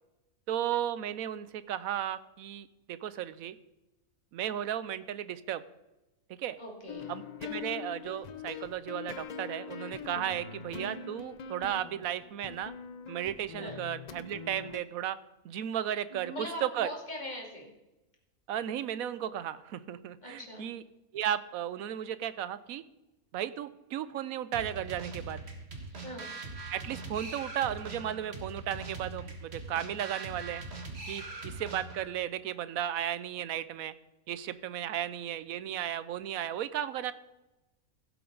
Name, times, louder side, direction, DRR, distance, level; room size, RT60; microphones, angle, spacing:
voice 1, 0.5-3.6 4.3-5.6 6.4-6.6 7.1-12.7 13.1-15.2 15.4-16.9 18.5-20.8 21.1-22.8 23.3-25.4 26.7-30.6 31.1-33.9 34.3-37.1, right 10 dB, 75° right, 15 dB, 1.0 m, -35 dB
voice 2, 6.6-7.1 13.6-13.8 16.1-17.7 20.2-20.7 25.9-26.3, equal, 30° left, -1 dB, 2.8 m, -41 dB
sound 1, 6.9-14.8, left 6 dB, 75° left, 0.4 m, -43 dB
sound 2, 24.5-32.1, right 3 dB, 45° right, 1.8 m, -42 dB
16.0 x 8.0 x 3.9 m, 1.0 s
omnidirectional pair, 1.5 m